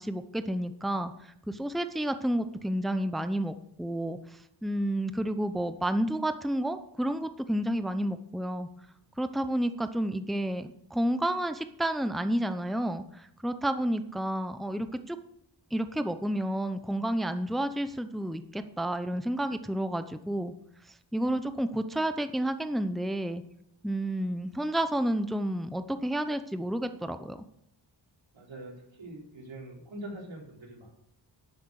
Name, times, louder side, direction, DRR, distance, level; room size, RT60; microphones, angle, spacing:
voice 1, 0.0-8.7 9.2-15.2 15.7-20.5 21.1-23.4 23.8-27.4, right 1 dB, ahead, 10 dB, 0.8 m, -30 dB
voice 2, 28.3-30.9, right 1 dB, 85° right, -1 dB, 4.2 m, -43 dB
11.5 x 9.2 x 6.5 m, 0.72 s
wide cardioid pair, 85°, 45 cm